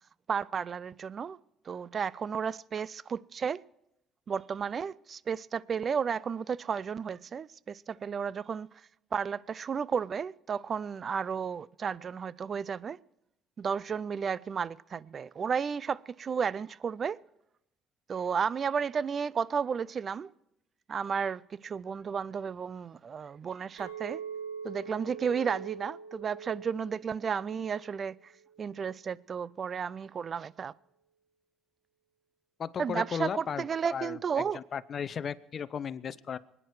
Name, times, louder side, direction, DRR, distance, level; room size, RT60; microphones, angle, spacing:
voice 1, 0.3-1.4 1.7-3.6 4.3-8.7 9.1-13.0 13.6-17.2 18.1-20.3 20.9-24.2 24.6-28.3 28.6-30.7 32.8-34.6, right 6 dB, 45° right, 0.4 m, -33 dB
Chink clink, 23.8-28.1 28.5-28.9, right 6 dB, 90° right, 2.1 m, -43 dB
voice 2, 32.6-33.6 33.9-36.4, left 7 dB, 50° left, 0.7 m, -35 dB
23.5 x 9.9 x 4.7 m
supercardioid pair, 70°, 0 cm